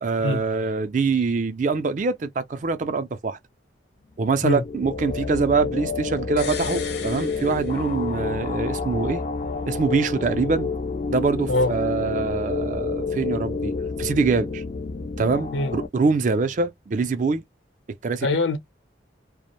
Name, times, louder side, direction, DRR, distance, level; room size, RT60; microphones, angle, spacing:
voice 1, 0.0-3.4 4.2-9.2 9.7-10.7 11.1-13.7 14.0-14.6 15.2-17.4 18.0-18.3, right 4 dB, 40° right, 0.4 m, -24 dB
sound 1, 4.3-15.9, left 4 dB, 35° left, 0.3 m, -29 dB
sound 2, 6.4-8.3 8.6-8.7, left 7 dB, 60° left, 0.7 m, -37 dB
voice 2, 18.2-18.6, left 2 dB, 85° left, 0.8 m, -22 dB
2.5 x 2.0 x 2.9 m
head